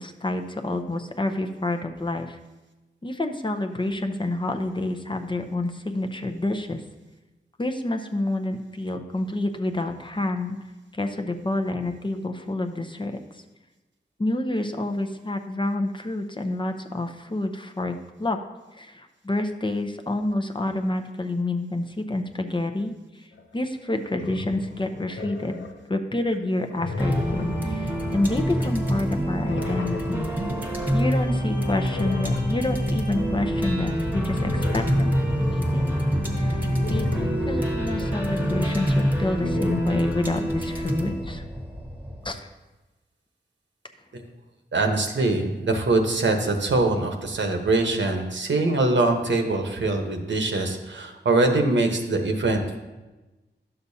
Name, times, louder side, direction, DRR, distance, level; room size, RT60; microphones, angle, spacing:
voice 1, 0.0-2.4 3.0-6.8 7.6-10.6 10.9-13.1 14.2-18.4 18.8-22.9 23.5-30.3 30.9-35.1 35.4-41.4 42.2-42.4, left 2 dB, 25° left, 5 dB, 0.6 m, -28 dB
sound 1, 23.4-23.5 23.9-25.9 26.3-29.0 29.3-31.1 31.7-33.6 34.2-38.9 39.2-40.1, left 3 dB, 85° left, 0.6 m, -36 dB
sound 2, 27.0-42.3, equal, 10° right, 1.2 m, -26 dB
voice 2, 44.7-52.8, right 2 dB, 75° right, 3 dB, 1.0 m, -23 dB
11.0 x 6.8 x 2.8 m, 1.1 s
wide cardioid pair, 70°, 19 cm